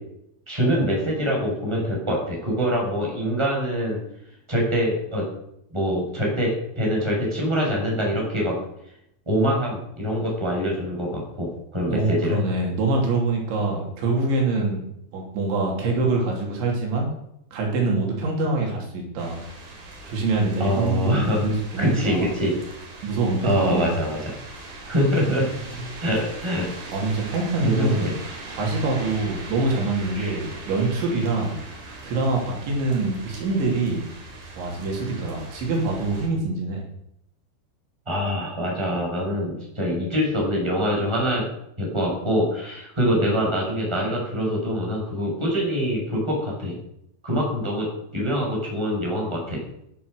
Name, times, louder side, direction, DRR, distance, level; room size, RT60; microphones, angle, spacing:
voice 1, 0.5-4.0 4.5-5.3 5.7-8.6 9.3-12.4 20.6-21.5 21.8-22.5 23.4-24.3 24.9-25.5 26.0-26.7 27.6-28.1 30.2-30.4 38.1-41.5 41.8-46.7 47.2-47.9 48.1-49.6, equal, 5° right, -2 dB, 6.1 m, -24 dB
voice 2, 11.9-17.1 17.5-19.4 20.1-22.3 23.0-23.9 26.9-28.1 28.5-31.6 32.0-34.0 34.6-36.8, right 3 dB, 70° right, 0 dB, 5.3 m, -25 dB
sound 1, 19.2-36.3, right 2 dB, 50° right, 5.2 m, -40 dB
15.0 x 11.0 x 6.6 m, 0.77 s
omnidirectional pair, 5.5 m